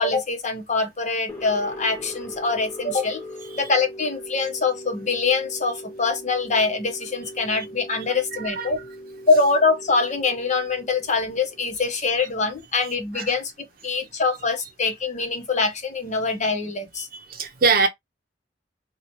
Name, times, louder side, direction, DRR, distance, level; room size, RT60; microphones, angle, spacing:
voice 1, 0.0-3.2 3.6-8.8 9.3-13.5 13.8-17.1, left 4 dB, 40° left, 0.9 m, -24 dB
sound 1, 1.3-12.2, left 1 dB, 15° left, 1.4 m, -40 dB
voice 2, 8.3-8.7 12.2-12.3 12.8-13.3 17.1-17.9, right 4 dB, 55° right, 0.7 m, -24 dB
2.9 x 2.3 x 4.3 m
head